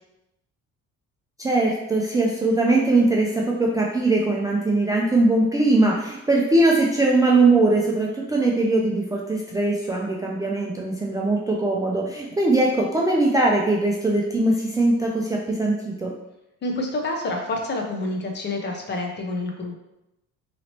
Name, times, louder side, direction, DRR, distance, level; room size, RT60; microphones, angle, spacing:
voice 1, 1.4-16.1, right 2 dB, 10° right, -3 dB, 0.3 m, -21 dB
voice 2, 16.6-19.8, left 2 dB, 35° left, 2 dB, 0.6 m, -28 dB
3.0 x 2.8 x 2.9 m, 0.90 s
cardioid pair, 120°, 30 cm